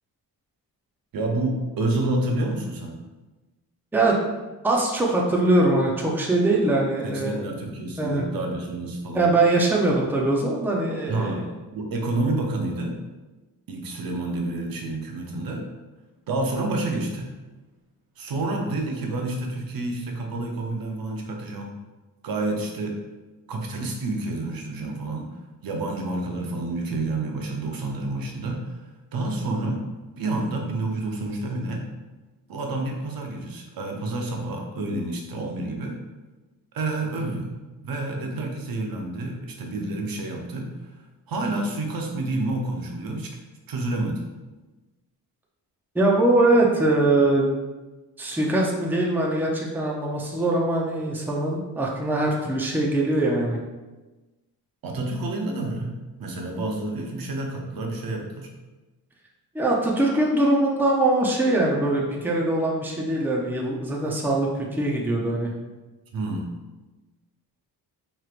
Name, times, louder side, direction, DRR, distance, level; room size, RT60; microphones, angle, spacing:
voice 1, 1.1-3.0 7.0-9.3 11.1-11.4 11.7-13.0 13.7-15.7 16.3-17.3 18.2-21.7 22.2-23.0 23.5-25.3 25.6-28.8 29.1-29.9 30.2-31.9 32.5-36.0 36.7-37.6 37.8-40.7 41.3-43.3 43.7-44.3 54.8-58.5 66.1-66.5, right 2 dB, 65° right, 1 dB, 0.8 m, -29 dB
voice 2, 4.6-7.5 8.0-8.3 9.1-11.5 45.9-47.5 48.2-53.6 59.5-65.5, right 2 dB, 5° right, -2 dB, 0.6 m, -22 dB
4.5 x 3.2 x 2.5 m, 1.2 s
cardioid pair, 105°, 38 cm